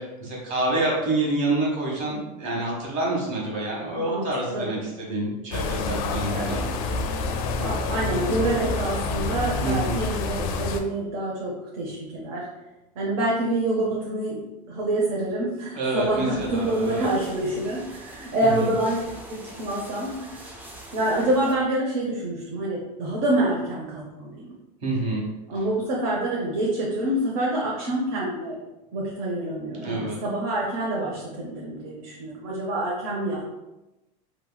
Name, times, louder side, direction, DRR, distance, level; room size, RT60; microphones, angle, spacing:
voice 1, 0.0-6.6 9.6-10.0 15.7-17.1 18.6-18.7 24.8-25.3 29.8-30.2, right 2 dB, 40° right, -3 dB, 1.1 m, -27 dB
voice 2, 4.0-4.7 6.3-6.6 7.6-12.4 13.0-14.4 14.7-19.0 19.3-20.4 20.9-24.5 25.5-28.6 28.9-33.4, right 1 dB, 70° right, -4 dB, 0.8 m, -27 dB
sound 1, 5.5-10.8, left 3 dB, 70° left, 0.4 m, -28 dB
sound 2, 16.0-21.5, right 1 dB, 10° right, 0.3 m, -44 dB
2.9 x 2.9 x 2.2 m, 0.99 s
supercardioid pair, 145°, 19 cm